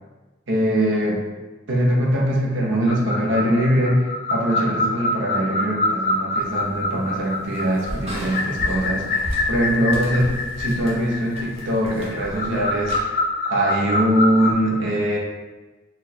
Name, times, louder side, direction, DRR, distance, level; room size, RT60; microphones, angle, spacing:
voice 1, 0.5-1.2 1.7-12.9 13.5-15.2, equal, 65° right, -3 dB, 0.9 m, -22 dB
sound 1, 2.9-14.5, left 2 dB, 45° left, 0.5 m, -26 dB
sound 2, 6.4-13.0, equal, 30° right, 0.9 m, -35 dB
4.2 x 2.5 x 4.2 m, 1.2 s
head